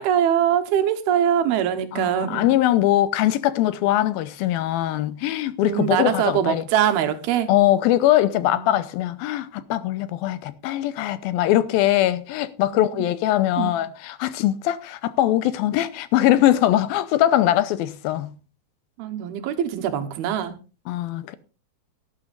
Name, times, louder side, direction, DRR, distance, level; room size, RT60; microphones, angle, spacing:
voice 1, 0.0-2.5 5.6-7.5 8.4-8.7 12.7-12.8 13.6-13.7 19.0-20.5, right 9 dB, 90° right, 3.2 m, -23 dB
voice 2, 1.9-6.6 7.5-18.3 20.9-21.4, left 13 dB, 85° left, 2.6 m, -21 dB
18.0 x 11.5 x 2.5 m
omnidirectional pair, 4.3 m